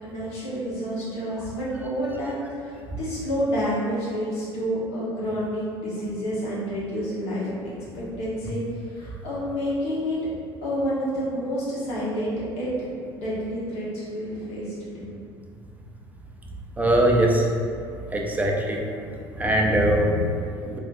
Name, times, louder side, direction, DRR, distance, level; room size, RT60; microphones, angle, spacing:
voice 1, 0.0-7.5 7.9-10.2 10.6-12.7 13.1-15.1, equal, 50° left, -8 dB, 1.3 m, -29 dB
voice 2, 16.8-17.5 18.1-18.8 19.3-20.8, right 1 dB, 10° right, -1 dB, 0.5 m, -21 dB
3.4 x 2.4 x 2.6 m, 2.3 s
hypercardioid pair, 65°, 13 cm